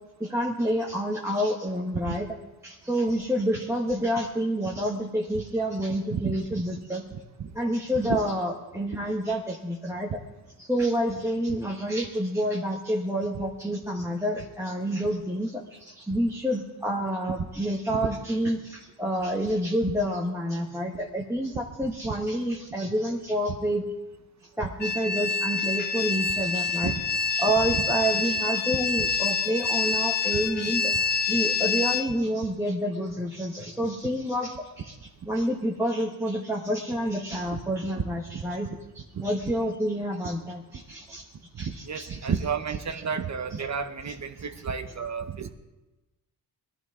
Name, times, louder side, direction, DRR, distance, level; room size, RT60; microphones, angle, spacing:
voice 1, 0.2-2.3 2.6-7.0 7.5-10.2 10.6-23.8 24.6-26.9 27.3-30.9 31.3-35.0 35.3-38.7 38.9-41.2 41.6-42.3 44.1-44.5, equal, 5° right, -2 dB, 1.2 m, -28 dB
voice 2, 7.1-7.5 8.1-8.2 17.9-18.0 26.8-27.0 37.5-37.6 38.0-38.1 38.3-38.4 41.5-45.5, right 6 dB, 45° right, 8 dB, 0.9 m, -31 dB
sound 1, 24.8-32.0, left 4 dB, 25° left, 0.6 m, -27 dB
20.5 x 12.5 x 3.7 m, 1.1 s
cardioid pair, 115°, 40 cm